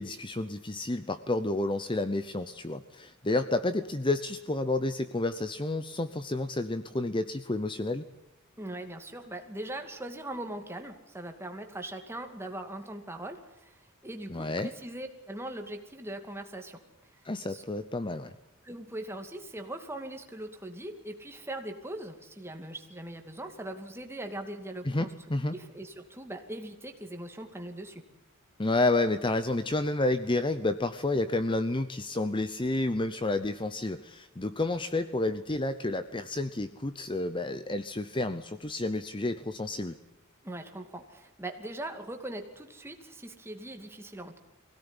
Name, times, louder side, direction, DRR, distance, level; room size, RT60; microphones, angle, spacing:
voice 1, 0.0-8.0 14.3-14.7 17.2-18.3 24.9-25.5 28.6-40.0, left 2 dB, 25° left, 11 dB, 0.8 m, -30 dB
voice 2, 8.6-16.8 17.1-17.2 17.5-17.6 18.6-25.1 25.5-28.0 40.4-44.4, right 1 dB, 10° right, 4 dB, 2.5 m, -40 dB
23.5 x 17.0 x 9.9 m, 0.94 s
head